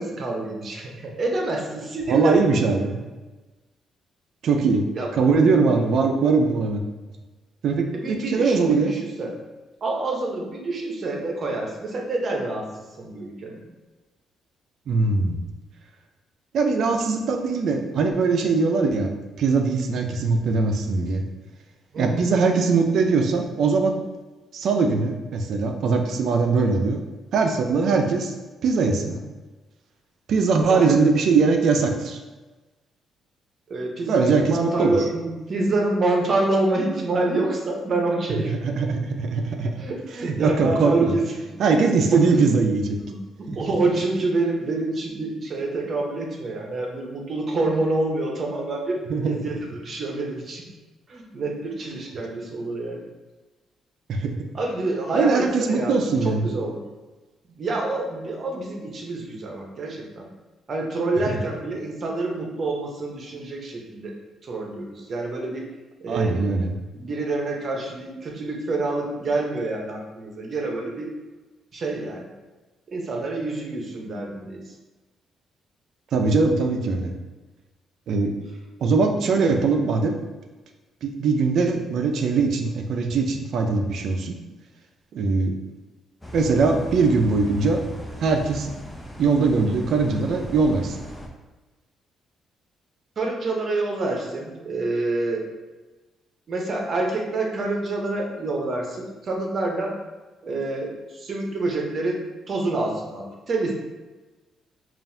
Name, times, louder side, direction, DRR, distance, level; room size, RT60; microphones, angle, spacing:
voice 1, 0.0-2.9 4.9-5.1 7.9-9.3 9.8-12.6 13.0-13.6 21.9-22.3 30.6-31.1 33.7-38.5 39.8-41.5 42.1-42.4 43.0-50.6 51.1-53.0 54.5-56.8 57.6-60.3 60.7-64.1 64.4-65.7 66.0-66.4 66.9-71.1 71.7-72.3 72.9-74.6 93.2-95.4 96.5-99.9 100.4-103.7, right 2 dB, 50° right, 0 dB, 0.8 m, -27 dB
voice 2, 2.1-3.0 4.4-4.8 5.2-6.8 7.6-8.9 14.9-15.4 16.5-21.2 22.0-24.0 24.5-27.0 27.3-28.3 28.6-29.2 30.3-32.2 34.1-34.9 38.6-39.7 40.2-41.2 41.6-43.0 43.5-43.6 49.1-49.4 54.1-54.3 55.1-56.5 66.1-66.7 76.1-77.1 78.1-78.3 78.8-80.2 81.0-84.3 85.1-85.5 86.3-87.8 88.2-88.7 89.2-91.0, right 4 dB, 70° right, 4 dB, 0.5 m, -21 dB
sound 1, 86.2-91.3, right 1 dB, 15° left, 0.7 m, -38 dB
5.4 x 2.5 x 2.7 m, 1.2 s
cardioid pair, 90°, 0 cm